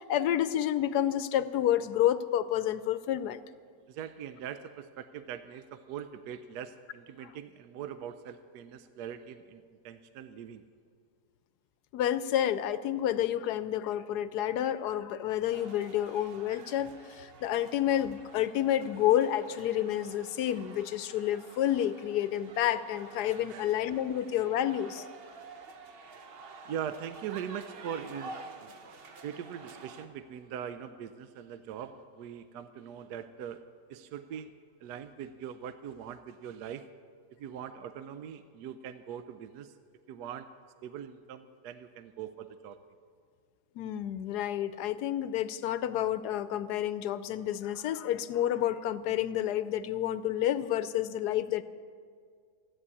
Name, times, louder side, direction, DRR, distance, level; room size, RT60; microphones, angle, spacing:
voice 1, 0.0-3.4 11.9-25.0 43.8-51.6, left 11 dB, 75° left, 14 dB, 1.1 m, -29 dB
voice 2, 3.9-10.6 23.5-23.7 26.7-28.7 29.2-33.6 33.9-34.5 34.8-36.9 37.4-39.7 40.1-40.5 40.8-42.8, right 8 dB, 75° right, 10 dB, 1.1 m, -41 dB
sound 1, 15.5-30.1, right 3 dB, 45° right, 0.9 m, -49 dB
13.5 x 10.0 x 8.4 m, 2.1 s
omnidirectional pair, 1.8 m